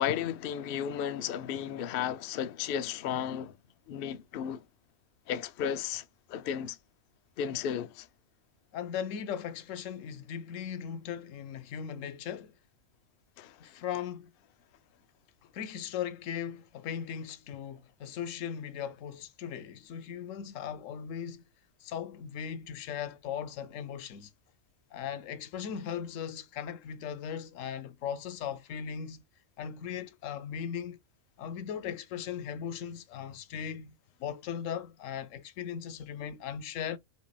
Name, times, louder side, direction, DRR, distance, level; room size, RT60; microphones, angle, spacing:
voice 1, 0.0-3.5 3.9-4.6 5.3-6.8 7.4-8.1 13.4-13.6, left 9 dB, 90° left, 0.4 m, -34 dB
voice 2, 8.7-12.5 13.6-14.3 15.4-21.4 21.8-24.3 24.9-29.2 29.6-31.0 31.4-37.0, left 8 dB, 70° left, 0.9 m, -38 dB
5.3 x 2.5 x 2.2 m
omnidirectional pair, 1.5 m